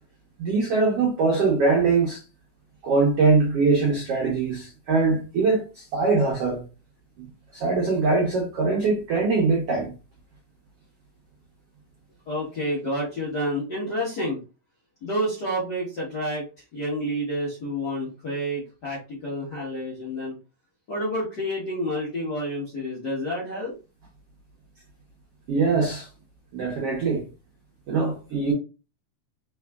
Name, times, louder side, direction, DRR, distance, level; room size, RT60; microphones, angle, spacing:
voice 1, 0.4-2.2 2.8-6.6 7.5-9.9 25.5-26.1 26.5-27.2 27.9-28.5, right 4 dB, 65° right, 1.5 m, -22 dB
voice 2, 12.3-14.4 15.0-20.3 20.9-23.7, equal, 75° left, 0.9 m, -29 dB
4.8 x 3.8 x 2.3 m
omnidirectional pair, 4.0 m